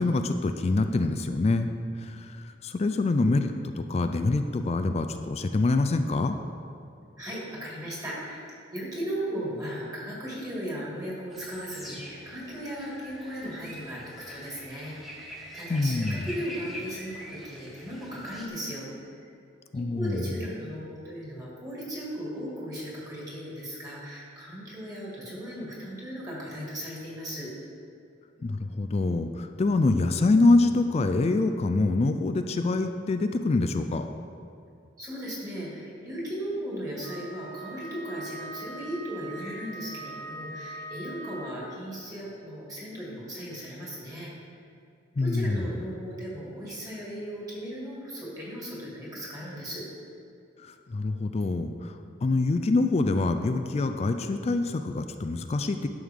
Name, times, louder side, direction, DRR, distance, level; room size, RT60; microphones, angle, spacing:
voice 1, 0.0-1.7 2.0-2.3 2.6-3.5 3.8-6.4 15.7-16.2 19.7-20.2 28.4-34.1 45.2-45.6 50.9-51.9 52.2-55.9, left 2 dB, 35° left, 7 dB, 0.3 m, -25 dB
voice 2, 7.2-18.9 19.2-19.3 19.7-27.5 35.0-44.3 45.2-49.8, equal, 20° right, -5 dB, 2.2 m, -37 dB
sound 1, 11.3-18.5, equal, ahead, 1.1 m, -44 dB
Wind instrument woodwind instrument, 37.0-41.9, right 2 dB, 65° right, 2.1 m, -42 dB
11.0 x 6.4 x 3.6 m, 2.5 s
head